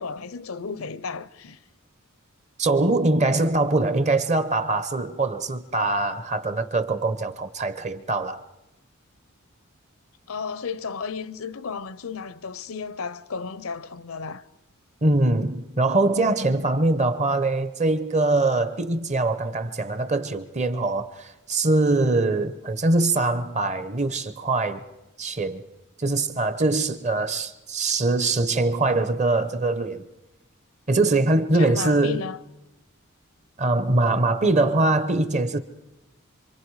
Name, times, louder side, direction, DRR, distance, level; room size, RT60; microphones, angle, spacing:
voice 1, 0.0-1.6 10.3-14.4 31.5-32.4, left 5 dB, 75° left, 0.7 m, -33 dB
voice 2, 2.6-8.4 15.0-24.8 25.2-25.6 26.0-30.1 30.9-32.3 33.6-35.6, right 2 dB, 35° right, 0.9 m, -23 dB
27.0 x 25.0 x 4.8 m
head